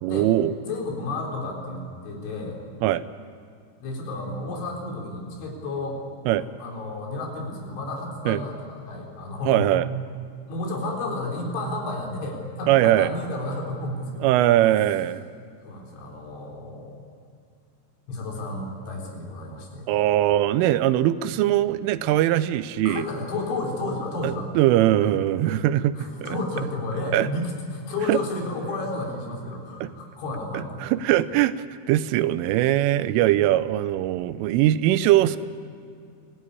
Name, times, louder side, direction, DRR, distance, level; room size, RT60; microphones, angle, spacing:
voice 1, 0.0-0.5 2.8-3.0 6.3-6.4 8.3-8.4 9.5-9.9 12.7-13.1 14.2-15.2 19.9-23.1 24.2-25.9 26.2-26.4 27.1-27.3 28.1-28.2 29.8-29.9 30.8-31.5 31.9-35.4, right 13 dB, 85° right, 14 dB, 3.2 m, -21 dB
voice 2, 0.7-2.6 3.8-6.0 6.4-9.7 10.5-14.3 15.6-17.0 18.1-19.9 22.9-24.5 25.1-25.7 26.0-30.8, left 2 dB, 70° left, 0 dB, 6.2 m, -32 dB
25.5 x 18.0 x 9.8 m, 2.3 s
omnidirectional pair, 5.7 m